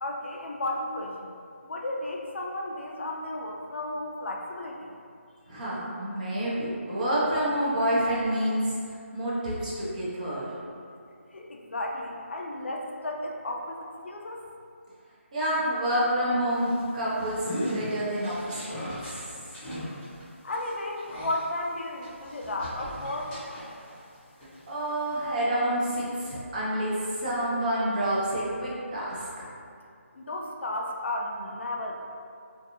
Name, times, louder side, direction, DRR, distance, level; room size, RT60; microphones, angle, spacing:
voice 1, 0.0-1.3 1.6-4.9 11.3-14.4 20.4-23.4 30.1-32.0, left 1 dB, 60° left, 0 dB, 0.4 m, -33 dB
voice 2, 5.5-8.8 9.1-10.6 15.3-19.4 24.7-29.5, right 1 dB, 35° right, -7 dB, 0.7 m, -28 dB
sound 1, 16.5-24.1 24.4-25.3, equal, 10° left, 0.6 m, -38 dB
2.5 x 2.4 x 2.8 m, 2.3 s
figure-of-eight pair, 165°, 7 cm